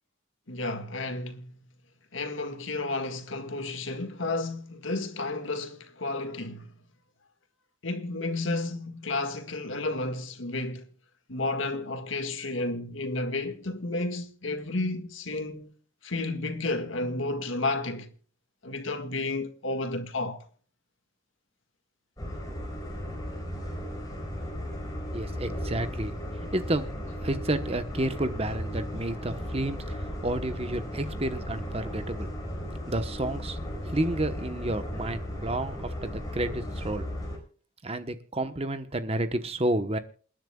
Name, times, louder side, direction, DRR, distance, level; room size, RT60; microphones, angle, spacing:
voice 1, 0.5-1.6 2.1-6.7 7.8-10.9 11.3-15.7 16.0-18.1 18.6-20.4, left 2 dB, 90° left, 1.9 m, -32 dB
sound 1, 22.2-37.4, equal, 20° left, 4.7 m, -36 dB
voice 2, 25.1-26.2 26.5-26.8 27.2-32.3 32.9-33.6 33.9-37.1 37.8-40.0, right 1 dB, 30° right, 1.1 m, -30 dB
28.5 x 10.5 x 2.4 m
head